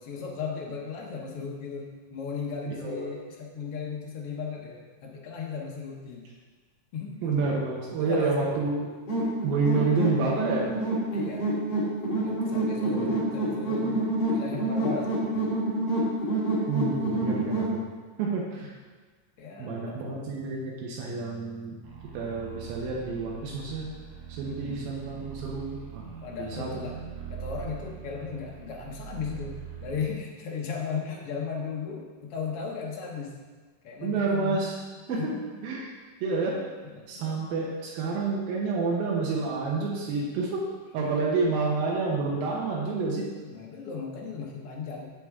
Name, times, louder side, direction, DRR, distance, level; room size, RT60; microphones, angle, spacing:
voice 1, 0.0-6.2 6.9-7.5 8.0-8.4 11.1-11.5 12.2-14.0 14.3-15.5 19.4-20.0 24.4-24.8 26.2-27.0 27.3-33.4 33.8-34.6 35.1-35.4 36.9-37.4 41.0-41.2 43.4-45.1, left 5 dB, 70° left, -1 dB, 1.3 m, -36 dB
voice 2, 2.7-3.2 7.2-8.9 9.4-10.7 12.9-13.1 16.7-17.8 18.2-18.7 19.6-21.8 22.1-23.9 24.3-26.1 26.4-26.7 34.0-34.8 35.1-35.3 35.6-35.9 36.2-36.6 37.1-40.6 40.9-43.3, right 4 dB, 90° right, -3 dB, 2.8 m, -29 dB
sound 1, 9.1-17.7, right 1 dB, 25° left, 1.3 m, -27 dB
sound 2, 21.8-30.1, right 8 dB, 75° right, 1.5 m, -42 dB
7.8 x 7.7 x 3.6 m, 1.4 s
omnidirectional pair, 4.0 m